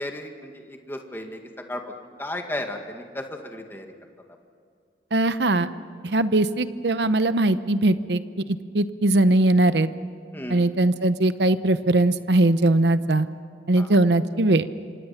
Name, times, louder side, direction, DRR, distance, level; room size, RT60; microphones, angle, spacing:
voice 1, 0.0-1.4 1.7-1.8 2.2-3.9 10.3-10.6 13.8-13.9, left 1 dB, 15° left, 3 dB, 2.0 m, -34 dB
voice 2, 5.1-5.7 6.0-8.2 8.5-9.9 10.5-13.3 13.7-14.7, right 2 dB, 70° right, 12 dB, 0.9 m, -20 dB
27.0 x 25.0 x 5.9 m, 2.3 s
head